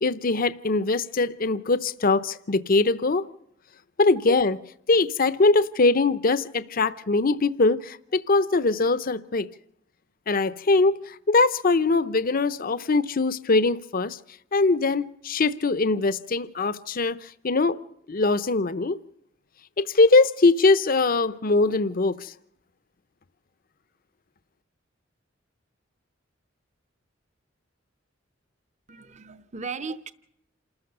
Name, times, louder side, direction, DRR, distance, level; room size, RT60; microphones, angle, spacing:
voice 1, 0.0-3.3 4.0-4.6 4.9-9.5 10.3-14.2 14.5-17.8 18.1-19.0 19.8-22.3, left 3 dB, 45° left, 0.7 m, -22 dB
voice 2, 28.9-30.1, right 5 dB, 35° right, 0.8 m, -36 dB
28.0 x 14.0 x 6.8 m
head